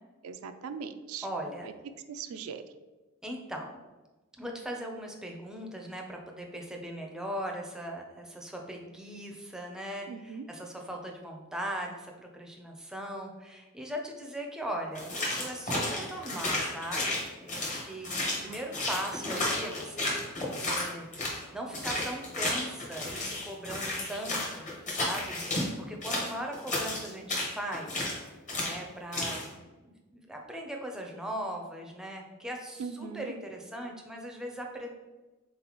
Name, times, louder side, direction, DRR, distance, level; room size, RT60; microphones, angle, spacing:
voice 1, 0.2-1.2 2.1-2.6 10.1-10.4 18.3-18.6 32.8-33.3, right 6 dB, 75° right, 10 dB, 0.3 m, -40 dB
voice 2, 1.2-1.7 3.2-3.7 4.4-17.1 17.4-20.1 20.4-25.4 25.9-28.1 28.6-34.9, right 1 dB, 5° right, 0 dB, 0.5 m, -39 dB
sound 1, 14.9-21.4 21.7-25.7 26.0-28.2 28.5-28.8 29.1-29.4, left 2 dB, 35° left, 1.0 m, -32 dB
3.9 x 3.7 x 2.9 m, 1.2 s
head